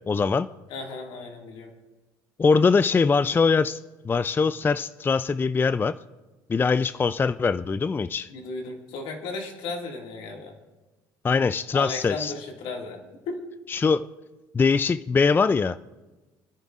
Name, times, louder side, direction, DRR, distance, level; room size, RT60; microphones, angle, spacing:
voice 1, 0.1-0.5 2.4-3.8 4.0-6.0 6.5-8.3 11.2-12.3 13.7-14.1 14.5-15.8, left 5 dB, 20° left, 15 dB, 0.3 m, -22 dB
voice 2, 0.7-1.7 8.3-10.6 11.7-13.4, left 3 dB, 70° left, 1 dB, 2.1 m, -35 dB
29.0 x 10.5 x 2.5 m, 1.2 s
supercardioid pair, 75°, 9 cm